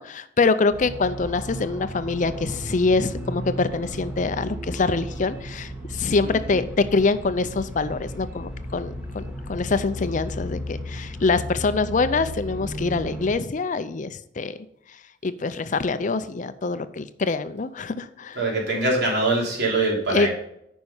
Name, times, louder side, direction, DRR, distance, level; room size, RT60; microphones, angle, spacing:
voice 1, 0.0-9.2 9.5-14.6 15.2-18.4 20.1-20.3, left 3 dB, 40° left, 13 dB, 0.5 m, -24 dB
sound 1, 0.7-13.3, equal, 10° right, 2.1 m, -34 dB
voice 2, 18.4-20.3, right 2 dB, 60° right, -2 dB, 3.5 m, -23 dB
9.2 x 5.3 x 5.5 m, 0.77 s
head